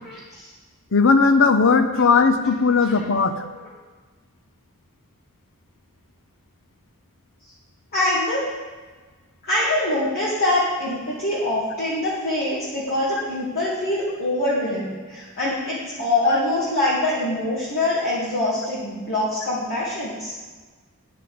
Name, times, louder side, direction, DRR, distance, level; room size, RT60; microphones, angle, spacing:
voice 1, 0.0-0.5 1.9-2.0 2.7-3.0 3.3-3.6 7.9-8.4 9.4-20.3, left 1 dB, 45° left, -8 dB, 2.4 m, -24 dB
voice 2, 0.9-3.3, left 4 dB, 60° left, 9 dB, 0.7 m, -17 dB
9.3 x 6.7 x 7.7 m, 1.3 s
head